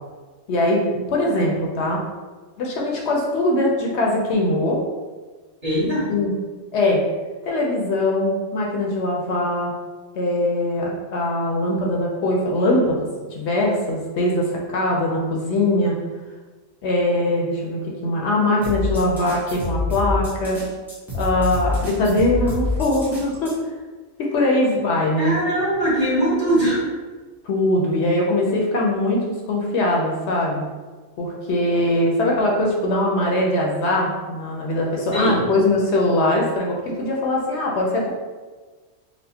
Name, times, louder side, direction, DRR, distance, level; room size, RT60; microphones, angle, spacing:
voice 1, 0.5-2.0 2.6-4.8 5.8-6.3 6.7-7.0 7.4-9.7 10.1-16.0 16.8-20.6 21.1-23.5 24.2-25.3 27.4-30.6 31.2-38.1, left 1 dB, 70° left, -1 dB, 0.8 m, -21 dB
voice 2, 5.6-6.1 25.2-26.8 35.1-35.4, right 1 dB, 35° right, -9 dB, 1.3 m, -21 dB
sound 1, 18.6-23.5, left 3 dB, ahead, 0.6 m, -27 dB
4.3 x 2.1 x 2.7 m, 1.4 s
omnidirectional pair, 1.2 m